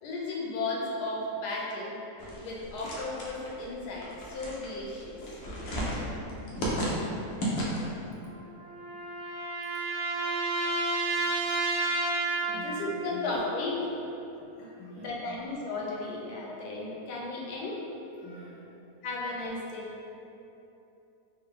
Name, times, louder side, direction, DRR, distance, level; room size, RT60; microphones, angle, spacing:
voice 1, 0.0-2.0 2.3-5.4 10.7-10.8 11.1-11.2 11.8-12.0 12.4-13.9 14.6-17.8 18.2-18.4 19.0-19.9, left 2 dB, 90° left, -3 dB, 1.2 m, -35 dB
sound 1, 2.2-8.0, right 1 dB, 65° left, 1.0 m, -34 dB
sound 2, 8.2-13.0, right 3 dB, 85° right, 1.2 m, -31 dB
voice 2, 12.5-13.2 14.7-15.4 18.2-18.8, left 1 dB, 65° right, -7 dB, 1.3 m, -48 dB
3.8 x 2.2 x 3.6 m, 2.9 s
omnidirectional pair, 1.7 m